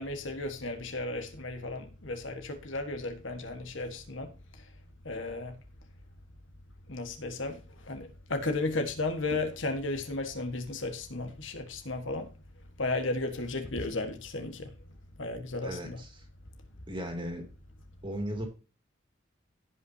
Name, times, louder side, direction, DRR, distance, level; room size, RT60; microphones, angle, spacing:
voice 1, 0.0-4.3 5.0-5.5 6.9-12.3 12.8-14.7 15.2-16.0, left 2 dB, 70° left, 1.5 m, -34 dB
voice 2, 15.6-16.2 16.9-17.5 18.0-18.5, equal, 25° right, 2.3 m, -36 dB
16.5 x 5.6 x 2.8 m
head